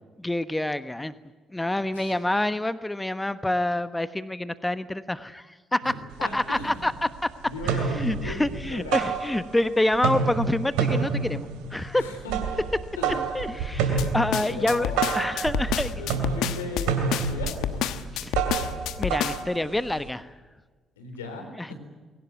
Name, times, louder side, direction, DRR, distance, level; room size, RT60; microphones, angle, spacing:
voice 1, 0.2-1.1 1.5-6.0 6.3-7.3 7.6-12.0 13.3-16.0 18.1-18.4 19.0-20.3 21.6-21.7, left 1 dB, 15° left, 13 dB, 1.2 m, -27 dB
voice 2, 5.8-6.9 7.4-9.2 11.9-12.4 13.0-13.2 14.5-15.2 16.0-18.0 21.0-21.7, left 2 dB, 90° left, 5 dB, 3.6 m, -37 dB
sound 1, 6.1-6.2 6.5-7.2 7.5-9.7 9.9-20.1, right 6 dB, 75° right, 2.6 m, -29 dB
sound 2, 14.0-19.6, left 11 dB, 70° left, 1.1 m, -29 dB
21.5 x 18.0 x 9.5 m, 1.3 s
hypercardioid pair, 45°, 0 cm